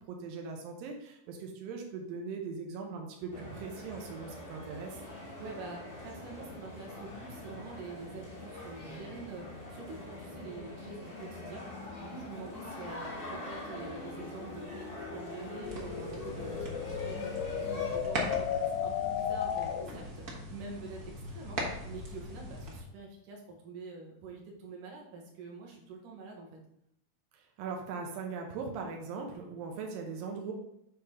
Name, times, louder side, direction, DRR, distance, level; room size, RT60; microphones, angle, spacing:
voice 1, 0.1-5.0 27.3-30.5, right 5 dB, 90° right, 2 dB, 2.7 m, -40 dB
sound 1, 3.3-18.0, left 1 dB, 40° left, 0.8 m, -45 dB
voice 2, 5.4-11.7 12.0-26.6, right 3 dB, 70° right, -1 dB, 2.9 m, -46 dB
sound 2, 8.8-20.1, left 8 dB, 80° left, 1.7 m, -38 dB
sound 3, 15.6-22.8, equal, 50° right, 1.1 m, -40 dB
8.4 x 3.5 x 5.7 m, 0.79 s
omnidirectional pair, 3.9 m